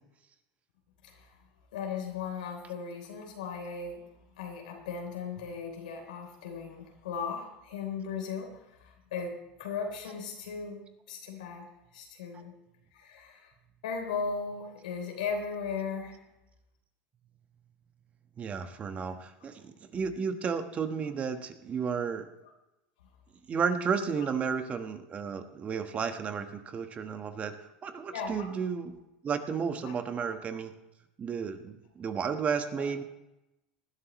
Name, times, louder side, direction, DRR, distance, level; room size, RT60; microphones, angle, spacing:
voice 1, 1.7-4.0 4.4-12.5 12.9-13.5 13.8-16.2 28.1-28.5 29.8-30.3 32.7-33.0, left 5 dB, 90° left, 2 dB, 3.5 m, -37 dB
voice 2, 18.4-22.3 23.5-27.6 27.8-29.0 29.2-30.7 31.2-33.0, right 6 dB, 30° right, 8 dB, 1.3 m, -33 dB
19.5 x 11.5 x 3.1 m, 0.92 s
supercardioid pair, 110°, 4 cm